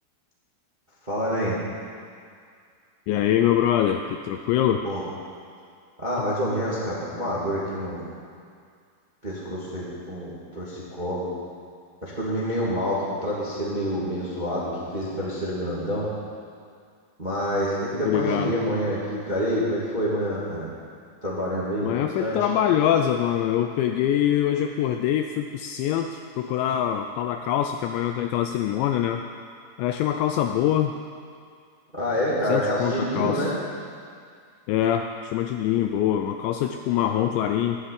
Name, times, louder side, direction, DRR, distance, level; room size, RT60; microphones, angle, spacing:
voice 1, 1.0-1.6 4.8-5.0 6.0-8.0 9.2-11.3 12.0-16.1 17.2-20.7 21.2-21.9 22.2-22.4 31.9-33.6, equal, 20° right, -7 dB, 1.2 m, -27 dB
voice 2, 3.1-4.8 18.0-18.5 21.8-29.2 29.8-30.9 32.5-33.5 34.7-37.8, left 10 dB, 85° left, 6 dB, 2.6 m, -24 dB
13.0 x 9.8 x 8.8 m, 2.2 s
omnidirectional pair, 5.6 m